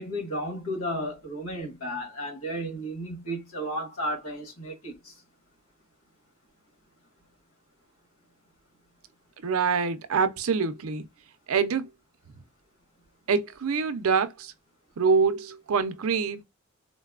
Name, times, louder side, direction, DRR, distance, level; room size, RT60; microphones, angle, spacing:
voice 1, 0.0-5.1, equal, 90° left, 1.5 m, -33 dB
voice 2, 9.4-11.1 11.5-11.8 13.3-14.5 15.0-16.4, right 5 dB, 85° right, 0.5 m, -25 dB
3.9 x 2.2 x 2.4 m
head